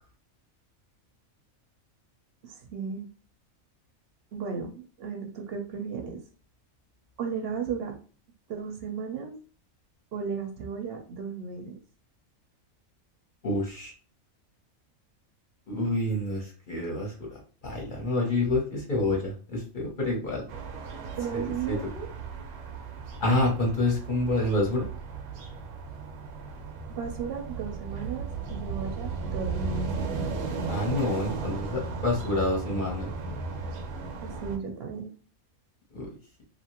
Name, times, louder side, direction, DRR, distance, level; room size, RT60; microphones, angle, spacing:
voice 1, 2.4-3.0 4.3-6.2 7.2-7.9 8.5-9.3 10.1-11.7 21.2-22.1 27.0-30.1 34.2-35.1, right 6 dB, 55° right, 3 dB, 0.7 m, -35 dB
voice 2, 13.4-13.9 15.7-20.4 21.3-21.8 23.2-24.9 30.7-33.1 35.9-36.1, left 2 dB, 45° left, -1 dB, 0.8 m, -28 dB
sound 1, 20.5-34.6, right 4 dB, 85° right, 1.1 m, -35 dB
2.8 x 2.4 x 2.9 m, 0.38 s
omnidirectional pair, 1.5 m